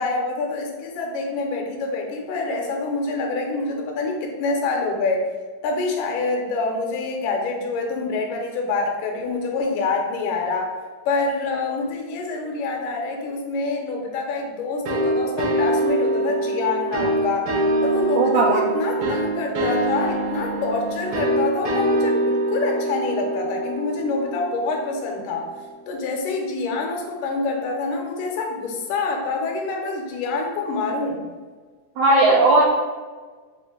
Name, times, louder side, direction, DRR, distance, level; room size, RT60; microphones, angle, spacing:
voice 1, 0.0-5.2 5.6-10.7 11.1-17.5 17.8-25.5 25.9-31.2, left 3 dB, 85° left, 1 dB, 2.2 m, -26 dB
sound 1, 14.9-25.3, right 1 dB, 70° right, 1.5 m, -24 dB
voice 2, 18.1-18.6 32.0-32.6, right 2 dB, 85° right, -4 dB, 1.4 m, -16 dB
5.5 x 2.6 x 3.6 m, 1.4 s
omnidirectional pair, 3.6 m